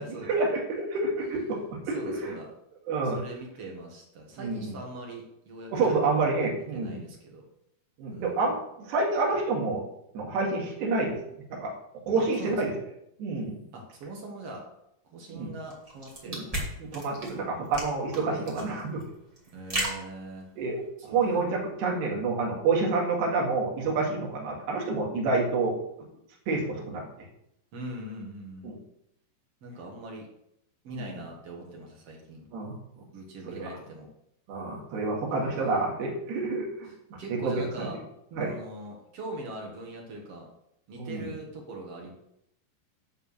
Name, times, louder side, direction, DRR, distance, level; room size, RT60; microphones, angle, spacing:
voice 1, 0.3-2.4 2.9-3.2 4.4-4.8 5.7-7.0 8.0-8.6 8.9-9.9 10.1-11.2 11.5-11.7 12.1-12.7 13.2-13.6 15.3-15.5 16.3-16.5 16.8-19.0 20.6-20.8 21.0-25.7 26.5-27.0 28.6-28.8 30.9-31.2 32.5-32.8 33.5-33.7 34.5-36.9 37.3-37.9 38.3-38.6 41.0-41.3, right 3 dB, 70° right, -2 dB, 4.0 m, -28 dB
voice 2, 1.2-1.6 1.9-2.5 3.0-6.3 6.7-7.4 8.1-8.5 12.2-12.6 13.7-14.6 15.0-16.5 19.5-20.5 21.1-21.5 27.7-28.8 29.6-30.3 30.8-32.4 33.1-34.1 35.3-35.9 37.2-38.0 38.4-40.5 40.9-42.1, right 2 dB, 55° right, 0 dB, 1.8 m, -42 dB
sound 1, 15.7-20.9, right 1 dB, 15° right, 1.5 m, -35 dB
10.5 x 4.6 x 7.1 m, 0.79 s
omnidirectional pair, 5.1 m